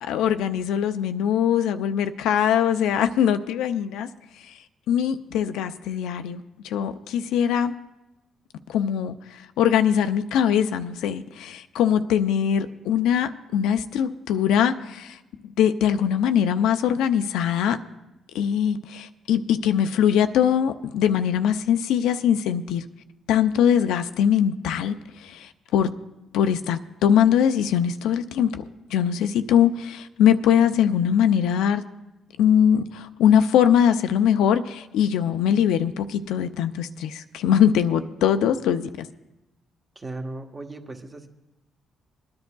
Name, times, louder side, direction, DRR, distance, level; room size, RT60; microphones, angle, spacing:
voice 1, 0.0-4.1 4.9-7.7 8.7-9.2 9.6-15.2 15.6-17.8 18.3-22.8 23.3-25.9 26.3-28.6 28.9-31.8 32.4-39.1, left 9 dB, 90° left, 0.4 m, -22 dB
voice 2, 39.9-41.3, right 2 dB, 30° right, 1.1 m, -36 dB
22.0 x 10.5 x 2.3 m
cardioid pair, 90°, 0 cm